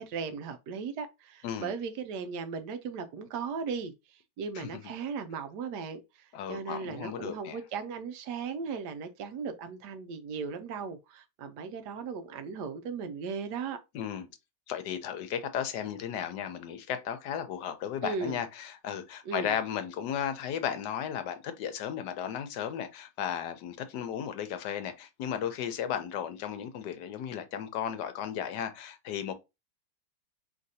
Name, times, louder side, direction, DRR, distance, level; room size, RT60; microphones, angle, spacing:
voice 1, 0.0-13.8 18.0-18.4 19.3-19.5, right 5 dB, 75° right, 1.1 m, -37 dB
voice 2, 6.3-7.6 13.9-14.3 14.7-29.3, left 9 dB, 75° left, 1.2 m, -35 dB
4.9 x 3.2 x 2.7 m
omnidirectional pair, 1.9 m